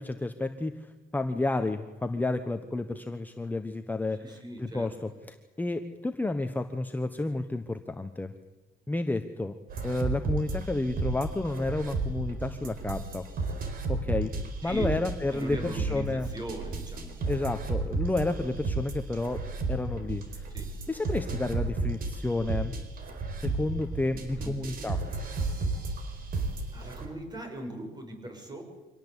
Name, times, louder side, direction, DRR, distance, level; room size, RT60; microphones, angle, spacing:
voice 1, 0.0-5.1 5.6-8.3 8.9-9.6 9.8-13.3 13.9-14.3 14.6-16.3 17.3-19.4 19.7-20.5 20.9-22.7 23.4-25.0, left 2 dB, 10° left, 7 dB, 1.2 m, -31 dB
voice 2, 4.2-5.1 14.6-15.0 15.3-17.2 20.5-20.7 24.4-24.5 26.7-28.6, right 1 dB, 25° right, 5 dB, 6.6 m, -40 dB
sound 1, 9.7-27.1, right 3 dB, 60° right, 4.4 m, -33 dB
25.0 x 18.0 x 8.3 m, 1.1 s
cardioid pair, 110°, 17 cm